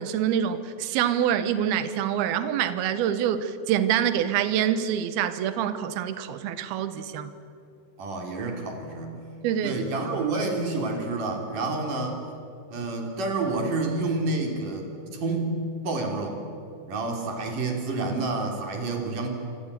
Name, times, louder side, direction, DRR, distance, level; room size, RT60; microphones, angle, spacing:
voice 1, 0.0-7.3 9.4-9.8, right 9 dB, 70° right, 12 dB, 2.9 m, -26 dB
voice 2, 8.0-9.2 9.6-12.2 12.7-15.6 15.8-16.4 16.9-19.3, right 3 dB, 50° right, 2 dB, 4.6 m, -29 dB
27.0 x 26.5 x 8.2 m, 2.7 s
omnidirectional pair, 5.0 m